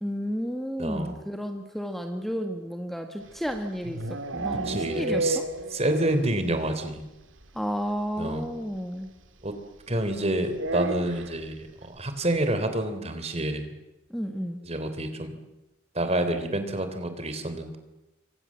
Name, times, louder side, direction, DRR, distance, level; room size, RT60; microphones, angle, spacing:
voice 1, 0.0-5.4 7.5-9.1 14.1-14.6, equal, ahead, 5 dB, 1.7 m, -32 dB
voice 2, 0.8-1.2 4.6-5.4 5.7-7.0 8.2-8.5 9.4-9.5 9.9-13.7 14.6-15.4 16.0-17.8, right 1 dB, 30° right, 9 dB, 3.5 m, -28 dB
sound 1, 3.3-6.3 6.6-6.7 7.0-7.1 7.4-7.5 8.7-8.8 10.5-11.4, right 2 dB, 75° right, 2.1 m, -31 dB
28.5 x 25.0 x 7.5 m, 1.0 s
head